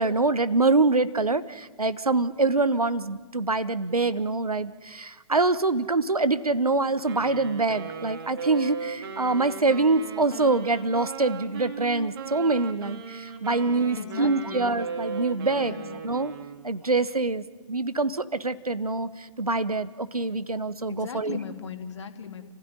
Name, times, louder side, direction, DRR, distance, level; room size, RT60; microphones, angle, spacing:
voice 1, 0.0-15.8 16.0-16.3 16.6-21.4, right 3 dB, 80° right, 15 dB, 1.3 m, -25 dB
Wind instrument woodwind instrument, 7.0-16.6, right 6 dB, 40° right, 3.0 m, -37 dB
voice 2, 14.0-14.6 15.5-16.0 20.9-22.5, left 7 dB, 50° left, 6 dB, 2.5 m, -37 dB
29.5 x 16.0 x 9.7 m, 1.3 s
figure-of-eight pair, 125°, 19 cm